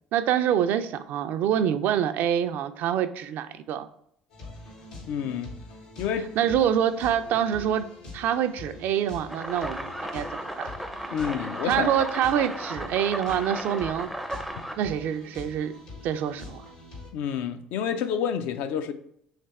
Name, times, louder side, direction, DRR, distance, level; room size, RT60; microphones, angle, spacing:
voice 1, 0.1-3.9 6.4-7.9 8.1-10.3 10.6-10.7 11.6-14.1 14.8-15.7 16.0-16.6, right 9 dB, 60° right, 0.3 m, -26 dB
sound 1, 4.3-17.1, left 3 dB, 85° left, 1.5 m, -44 dB
voice 2, 5.1-5.5 6.0-6.5 11.1-11.9 17.1-18.9, left 8 dB, 65° left, 0.4 m, -29 dB
sound 2, 9.3-14.8, equal, ahead, 0.4 m, -35 dB
3.3 x 3.3 x 4.1 m
hypercardioid pair, 65°, 3 cm